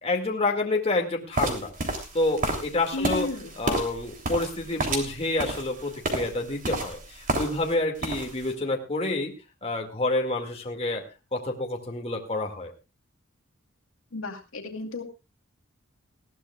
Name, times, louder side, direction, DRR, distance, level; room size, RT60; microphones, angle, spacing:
voice 1, 0.0-1.7 2.1-3.3 3.6-9.3 9.6-11.0 11.3-12.7, left 2 dB, 30° left, 1 dB, 2.1 m, -28 dB
sound 1, 1.3-7.7 8.0-8.5, right 2 dB, 40° right, 3.1 m, -30 dB
voice 2, 2.9-3.6 14.1-15.0, left 2 dB, 90° left, 2 dB, 2.4 m, -33 dB
20.0 x 15.0 x 2.4 m, 0.28 s
head